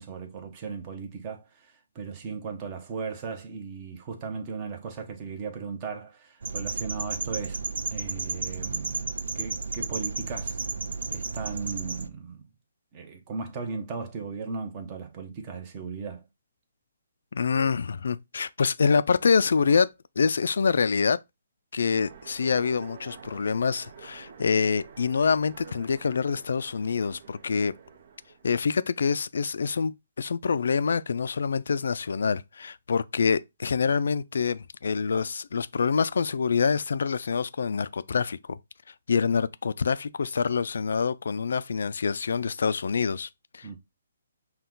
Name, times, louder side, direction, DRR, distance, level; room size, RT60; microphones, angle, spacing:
voice 1, 0.0-7.6 7.9-9.1 9.3-10.6 11.1-12.5 12.9-16.2 43.6-43.8, right 5 dB, 30° right, 1.0 m, -37 dB
sound 1, 6.4-12.1, right 4 dB, 75° right, 0.5 m, -33 dB
voice 2, 17.3-19.9 20.2-21.2 21.7-27.7 28.4-38.6 39.1-43.8, left 5 dB, 70° left, 0.3 m, -26 dB
Train, 22.0-28.9, right 6 dB, 60° right, 0.9 m, -49 dB
5.6 x 2.3 x 3.8 m
hypercardioid pair, 150°, 0 cm